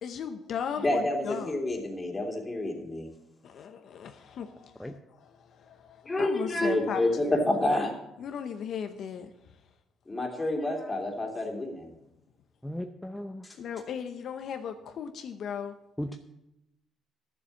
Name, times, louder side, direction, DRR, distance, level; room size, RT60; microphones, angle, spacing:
voice 1, 0.0-1.5 3.4-7.5 8.2-9.3 13.6-15.7, left 7 dB, 65° left, 0.8 m, -37 dB
voice 2, 0.8-3.1 6.1-7.9 10.1-11.9, left 1 dB, 20° left, 2.9 m, -28 dB
voice 3, 12.6-13.4 16.0-16.2, equal, 5° left, 0.7 m, -36 dB
11.5 x 7.1 x 7.2 m
cardioid pair, 90°, 0 cm